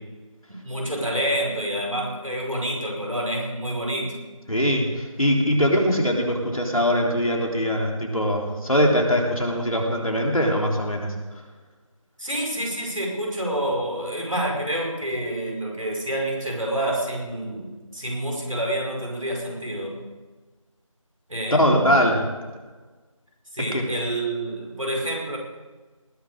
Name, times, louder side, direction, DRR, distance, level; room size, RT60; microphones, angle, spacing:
voice 1, 0.5-4.2 12.2-19.9 21.3-22.0 23.5-25.4, right 1 dB, 75° right, -1 dB, 5.1 m, -28 dB
voice 2, 4.5-11.1 21.5-22.3 23.7-23.8, equal, 85° left, 0 dB, 3.7 m, -22 dB
19.5 x 7.2 x 6.6 m, 1.3 s
figure-of-eight pair, 175°, 17 cm